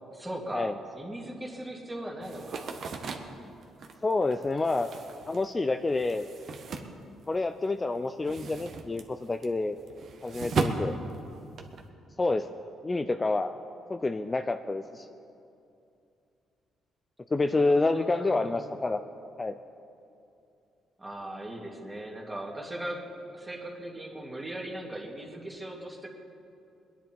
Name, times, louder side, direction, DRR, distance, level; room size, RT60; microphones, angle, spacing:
voice 1, 0.1-2.7 17.5-18.6 21.0-23.1 23.3-26.1, right 1 dB, 15° right, 0 dB, 2.4 m, -39 dB
sound 1, 2.2-7.6 7.9-11.8, right 4 dB, 60° right, 1.3 m, -37 dB
voice 2, 4.0-4.9 5.3-6.3 7.3-9.8 10.2-11.0 12.2-12.5 12.8-13.5 13.9-15.1 17.3-19.0 19.4-19.5, left 3 dB, 25° left, 8 dB, 0.5 m, -28 dB
22.0 x 10.5 x 4.5 m, 2.7 s
cardioid pair, 90°, 0 cm